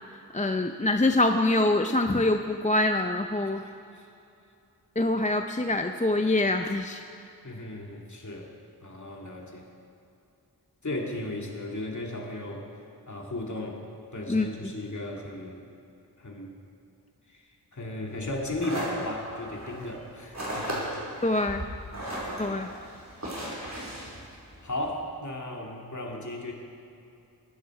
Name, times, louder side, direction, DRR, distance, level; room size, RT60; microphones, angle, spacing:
voice 1, 0.3-3.6 5.0-7.0 14.3-14.7 21.2-21.6 22.4-22.7, left 2 dB, 20° left, 6 dB, 0.6 m, -25 dB
voice 2, 7.4-8.5 8.8-9.7 10.8-12.6 13.1-13.8 14.1-15.6 16.2-16.5 17.3-17.4 17.7-20.9 21.9-22.3 24.6-26.5, left 1 dB, 45° left, 0 dB, 2.4 m, -35 dB
sound 1, 18.2-24.9, right 1 dB, 45° right, 4.6 m, -36 dB
22.0 x 11.0 x 4.8 m, 2.7 s
wide cardioid pair, 75°, 39 cm